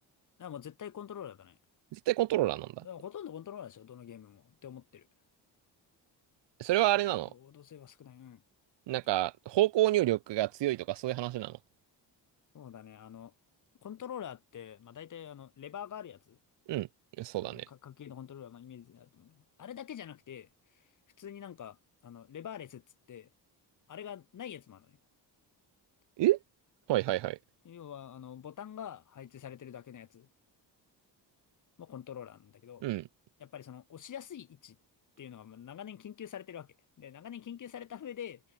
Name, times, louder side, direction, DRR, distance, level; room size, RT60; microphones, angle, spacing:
voice 1, 0.4-1.6 2.8-5.1 6.7-8.4 12.5-13.3 13.8-16.4 17.4-20.9 21.2-22.8 23.1-23.3 23.9-25.0 27.1-27.2 27.6-30.3 31.8-32.9 33.4-34.8 35.2-38.4, left 9 dB, 45° left, 3.4 m, -46 dB
voice 2, 1.9-2.8 6.6-7.3 8.9-11.6 16.7-16.9 17.2-17.7 26.2-26.4 26.9-27.4 32.8-33.0, right 15 dB, 85° right, 1.1 m, -28 dB
cardioid pair, 180°, 41 cm